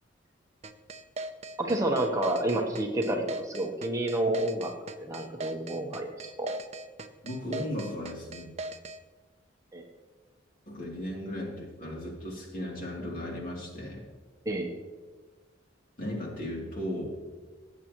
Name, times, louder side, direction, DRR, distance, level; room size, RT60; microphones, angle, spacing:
sound 1, 0.6-9.0, right 2 dB, 35° right, 0.6 m, -39 dB
voice 1, 1.6-4.7 5.0-6.5 9.7-9.8 14.5-14.7, right 1 dB, 15° right, 1 dB, 0.9 m, -29 dB
voice 2, 7.2-8.5 10.7-14.0 16.0-17.1, left 1 dB, 45° left, -2 dB, 2.9 m, -36 dB
19.0 x 8.5 x 3.0 m, 1.4 s
head